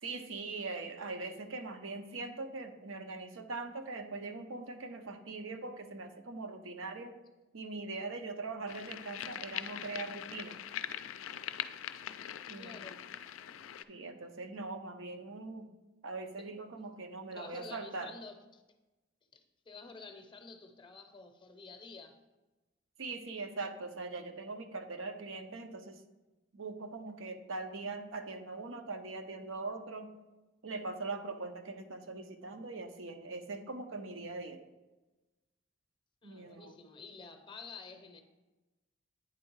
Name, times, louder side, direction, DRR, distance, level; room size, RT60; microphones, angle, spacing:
voice 1, 0.0-7.1 7.5-10.6 12.5-12.8 13.9-15.7 16.0-18.1 23.0-26.0 26.5-30.1 30.6-34.6 36.2-36.7, right 3 dB, 80° right, 6 dB, 0.7 m, -41 dB
sound 1, 8.7-13.8, left 10 dB, 80° left, 0.4 m, -42 dB
voice 2, 12.6-13.0 16.4-16.5 17.3-18.6 19.3-22.2 36.2-38.2, left 4 dB, 25° left, 6 dB, 0.6 m, -50 dB
8.9 x 3.6 x 4.6 m, 1.1 s
head